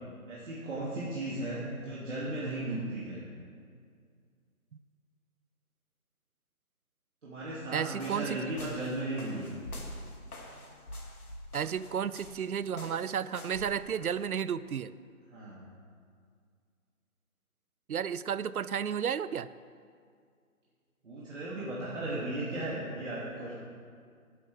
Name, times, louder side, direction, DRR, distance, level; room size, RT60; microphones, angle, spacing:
voice 1, 0.3-3.2 7.2-9.6 15.3-15.6 21.0-23.5, right 1 dB, 55° right, -7 dB, 2.7 m, -36 dB
voice 2, 7.7-8.4 11.5-14.9 17.9-19.5, right 8 dB, 80° right, 17 dB, 0.6 m, -32 dB
sound 1, 7.9-14.3, left 1 dB, 85° left, 2.2 m, -46 dB
14.0 x 11.0 x 3.6 m, 2.1 s
figure-of-eight pair, 155°, 43 cm